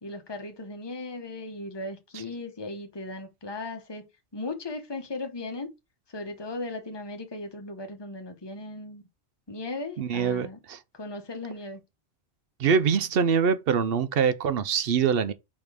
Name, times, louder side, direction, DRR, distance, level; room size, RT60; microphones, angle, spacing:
voice 1, 0.0-5.7 6.1-9.0 9.5-10.6 10.9-11.8, left 2 dB, 25° left, 1.0 m, -37 dB
voice 2, 10.0-10.8 12.6-15.3, right 6 dB, 65° right, 0.8 m, -24 dB
5.2 x 3.8 x 4.7 m
omnidirectional pair, 1.1 m